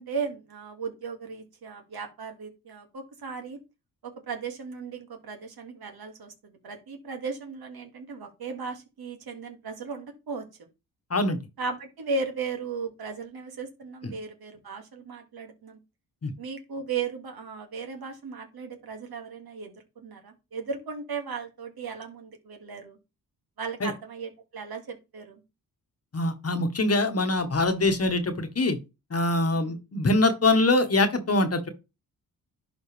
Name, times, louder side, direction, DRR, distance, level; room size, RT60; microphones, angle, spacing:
voice 1, 0.0-3.6 4.0-10.4 11.6-15.8 16.4-23.0 23.6-25.4 29.5-29.8, right 4 dB, 65° right, 4 dB, 2.2 m, -36 dB
voice 2, 26.1-28.8 29.1-31.7, left 2 dB, 35° left, 8 dB, 1.4 m, -23 dB
11.0 x 4.0 x 3.4 m, 0.26 s
cardioid pair, 60°, 41 cm